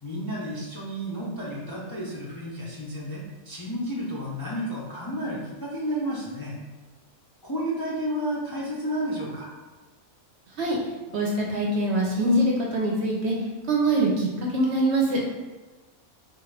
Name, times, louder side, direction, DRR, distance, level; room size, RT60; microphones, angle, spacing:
voice 1, 0.0-6.6 7.4-9.5, equal, 30° left, -7 dB, 0.4 m, -31 dB
voice 2, 11.1-13.3 13.7-15.2, right 1 dB, 60° right, -2 dB, 0.8 m, -23 dB
4.2 x 2.5 x 3.2 m, 1.3 s
omnidirectional pair, 1.5 m